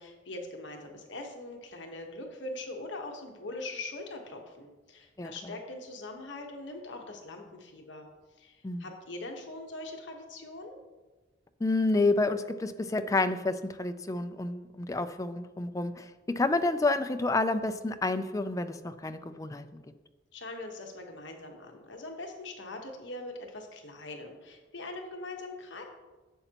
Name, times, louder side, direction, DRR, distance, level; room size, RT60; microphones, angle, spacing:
voice 1, 0.0-8.1 8.4-10.8 20.3-25.8, left 2 dB, 65° left, 2 dB, 1.2 m, -42 dB
voice 2, 11.6-19.8, left 2 dB, 15° left, 9 dB, 0.3 m, -29 dB
11.0 x 7.8 x 2.9 m, 1.2 s
head